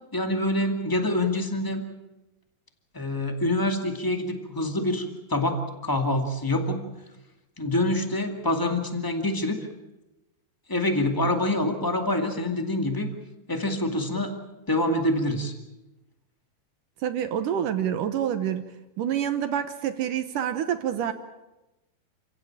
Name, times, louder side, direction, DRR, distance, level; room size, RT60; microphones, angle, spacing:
voice 1, 0.1-1.8 2.9-6.9 7.6-9.6 10.7-13.1 13.5-14.3 14.7-15.5, left 1 dB, 10° left, 5 dB, 0.9 m, -26 dB
voice 2, 17.0-18.6 19.0-21.1, right 9 dB, 70° right, 9 dB, 2.3 m, -27 dB
29.0 x 16.5 x 8.7 m, 1.0 s
omnidirectional pair, 4.6 m